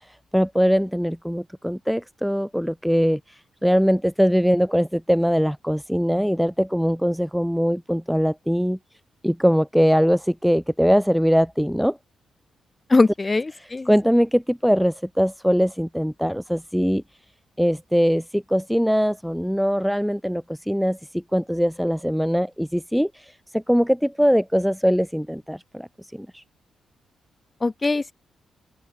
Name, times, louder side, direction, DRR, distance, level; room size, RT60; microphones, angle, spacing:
voice 1, 0.3-8.8 9.2-12.0 13.6-17.0 17.6-26.4, equal, ahead, 0.7 m, -22 dB
voice 2, 12.9-13.9 27.6-28.1, left 3 dB, 20° left, 1.8 m, -21 dB
cardioid pair, 130°, 0 cm